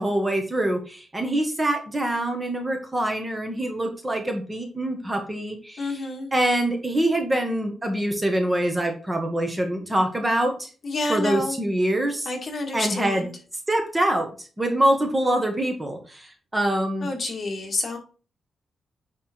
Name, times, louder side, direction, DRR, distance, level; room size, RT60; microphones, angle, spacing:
voice 1, 0.0-6.0 6.3-10.7 11.1-12.3 12.7-13.3 13.7-17.1, right 1 dB, 15° right, 4 dB, 1.4 m, -25 dB
voice 2, 5.8-6.3 10.8-11.6 12.3-13.3 17.0-18.0, left 2 dB, 40° left, 2 dB, 2.0 m, -29 dB
9.6 x 3.6 x 4.4 m, 0.37 s
wide cardioid pair, 130°, 0 cm